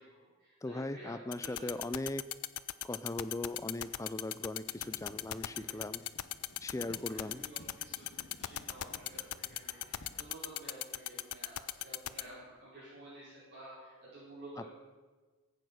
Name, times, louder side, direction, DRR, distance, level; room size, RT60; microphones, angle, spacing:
voice 1, 0.0-1.7 5.4-5.8 6.8-14.7, right 1 dB, 45° right, -11 dB, 5.4 m, -52 dB
voice 2, 0.6-2.3 2.8-6.0 6.6-7.4, left 2 dB, 15° left, 13 dB, 0.4 m, -39 dB
sound 1, 1.3-12.2, left 15 dB, 80° left, 0.5 m, -36 dB
Writing, 4.6-10.2, left 2 dB, 50° left, 1.0 m, -57 dB
15.0 x 8.7 x 6.5 m, 1.3 s
head